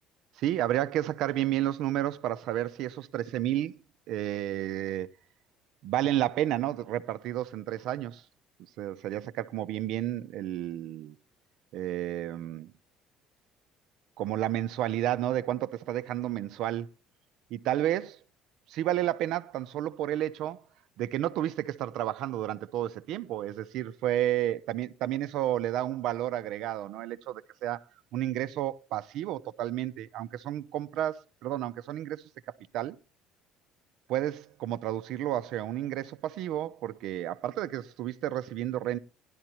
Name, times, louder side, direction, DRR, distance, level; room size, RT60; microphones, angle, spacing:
voice 1, 0.4-3.8 4.1-5.1 5.8-8.2 8.8-11.2 11.7-12.7 14.2-16.9 17.5-18.2 18.7-20.6 21.0-27.8 28.1-32.2 32.7-33.0 34.1-39.0, right 13 dB, 55° right, 0.6 m, -31 dB
17.5 x 11.5 x 2.9 m
cardioid pair, 175°, 0 cm